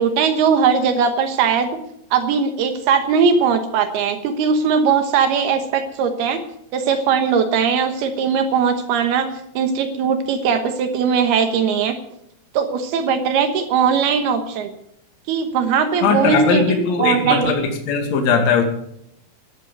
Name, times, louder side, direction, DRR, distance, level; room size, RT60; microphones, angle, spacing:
voice 1, 0.0-1.7 2.1-6.4 6.7-9.3 9.6-11.9 12.5-14.7 15.3-17.5, right 6 dB, 80° right, 7 dB, 3.2 m, -19 dB
voice 2, 16.0-18.6, left 5 dB, 50° left, 3 dB, 3.0 m, -19 dB
12.0 x 11.0 x 8.1 m, 0.74 s
omnidirectional pair, 4.5 m